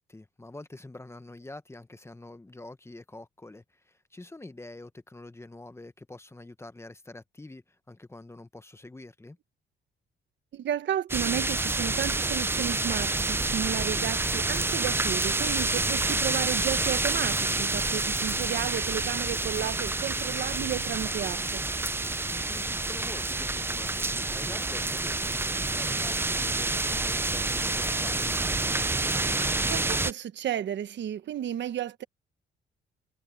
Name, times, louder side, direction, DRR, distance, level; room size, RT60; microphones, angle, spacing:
voice 1, 0.0-9.4 22.3-28.4, left 2 dB, 15° left, 1.1 m, -46 dB
voice 2, 10.5-21.6 29.6-32.0, right 10 dB, 65° right, 1.2 m, -33 dB
sound 1, 11.1-30.1, right 2 dB, 10° right, 0.5 m, -28 dB
sound 2, 11.8-21.2, left 14 dB, 85° left, 4.8 m, -48 dB
cardioid pair, 90°, 20 cm